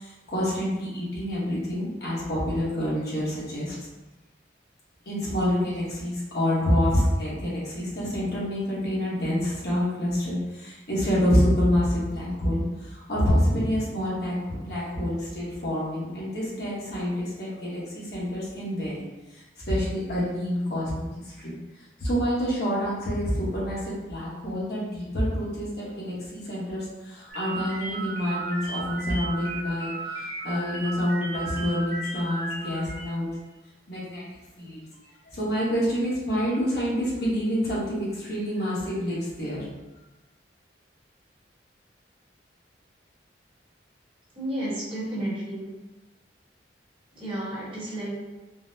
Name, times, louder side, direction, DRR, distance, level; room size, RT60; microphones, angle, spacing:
voice 1, 0.0-3.7 5.1-19.1 19.3-21.5 22.0-33.3 33.9-34.2 34.6-34.8 35.2-39.7, equal, 60° left, -7 dB, 1.0 m, -27 dB
sound 1, 27.3-33.1, right 2 dB, 80° left, 1.4 m, -35 dB
voice 2, 44.3-45.7 47.1-48.1, right 1 dB, 30° right, -9 dB, 1.2 m, -32 dB
3.8 x 2.1 x 2.6 m, 1.1 s
head